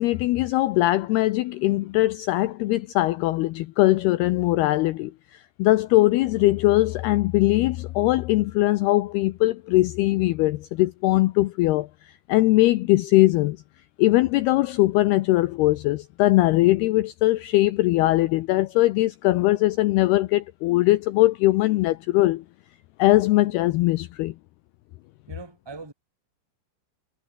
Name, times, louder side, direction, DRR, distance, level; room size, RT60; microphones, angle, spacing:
voice 1, 0.0-11.9 12.3-13.6 14.0-22.4 23.0-24.3, left 18 dB, 90° left, 2.3 m, -21 dB
voice 2, 25.3-25.9, right 4 dB, 5° right, 2.8 m, -40 dB
omnidirectional pair, 5.4 m